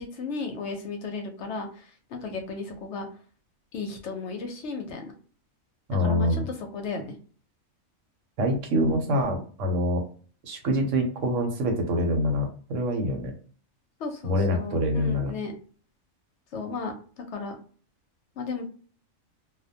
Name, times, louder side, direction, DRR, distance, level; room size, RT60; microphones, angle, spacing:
voice 1, 0.0-3.1 3.7-5.1 6.0-6.4 6.7-7.1 14.0-15.5 16.5-16.9 17.3-17.6 18.4-18.7, left 4 dB, 65° left, 4 dB, 0.8 m, -34 dB
voice 2, 5.9-6.5 8.4-10.0 10.5-13.3 14.2-15.3, equal, 70° right, 3 dB, 1.0 m, -25 dB
2.4 x 2.1 x 2.6 m, 0.40 s
omnidirectional pair, 1.4 m